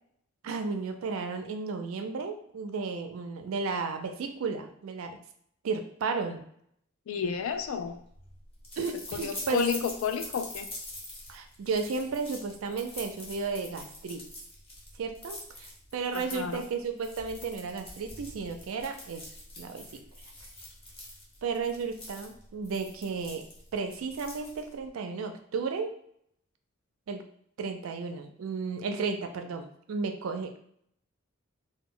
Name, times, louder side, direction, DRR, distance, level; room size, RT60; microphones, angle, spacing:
voice 1, 0.4-5.2 5.6-6.5 8.8-9.6 11.3-14.2 15.0-19.3 19.6-19.8 21.4-23.4 23.7-25.9 27.1-27.2 27.6-30.6, right 4 dB, 75° right, 6 dB, 0.4 m, -33 dB
voice 2, 7.1-8.0 9.1-10.7 16.1-16.6, left 6 dB, 75° left, 9 dB, 0.3 m, -31 dB
sound 1, 7.4-24.9, left 1 dB, 30° left, 0.7 m, -45 dB
2.1 x 2.0 x 3.6 m, 0.67 s
head